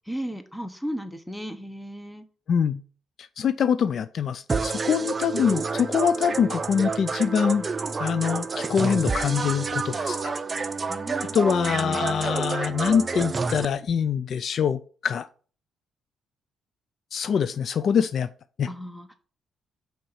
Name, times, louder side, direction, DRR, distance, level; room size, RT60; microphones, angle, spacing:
voice 1, 0.1-2.3 10.9-11.3 11.7-12.4 18.7-19.2, equal, 5° left, 1.0 m, -35 dB
voice 2, 2.5-2.8 3.4-7.7 8.0-10.3 11.3-15.3 17.1-18.3 18.6-18.7, left 7 dB, 60° left, 0.4 m, -24 dB
sound 1, 4.5-13.7, right 4 dB, 30° right, 0.6 m, -29 dB
5.4 x 4.4 x 5.6 m
cardioid pair, 90°, 0 cm